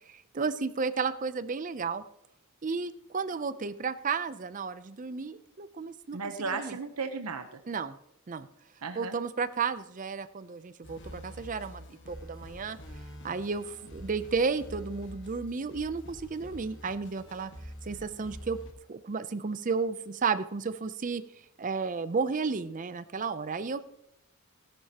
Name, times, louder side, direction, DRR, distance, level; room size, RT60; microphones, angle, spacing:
voice 1, 0.1-2.0 2.6-6.2 6.5-6.7 7.7-8.0 8.3-8.5 9.0-12.8 13.2-17.5 17.8-18.6 18.9-21.2 21.6-23.9, right 5 dB, 35° right, 14 dB, 0.5 m, -33 dB
voice 2, 6.1-7.6 8.8-9.2, right 4 dB, 90° right, 7 dB, 0.9 m, -35 dB
sound 1, 10.8-18.7, equal, 55° left, 1.6 m, -46 dB
16.5 x 11.0 x 2.9 m, 0.78 s
head